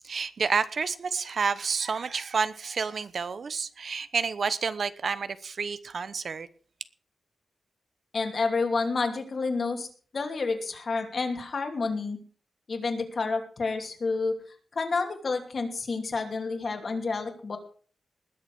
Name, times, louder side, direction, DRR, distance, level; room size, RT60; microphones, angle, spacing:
voice 1, 0.0-6.5, right 5 dB, 60° right, 0.9 m, -29 dB
voice 2, 8.1-9.9 10.1-12.2 12.7-14.3 14.7-17.6, left 4 dB, 50° left, 2.8 m, -29 dB
20.0 x 7.2 x 6.2 m
wide cardioid pair, 135°, 0 cm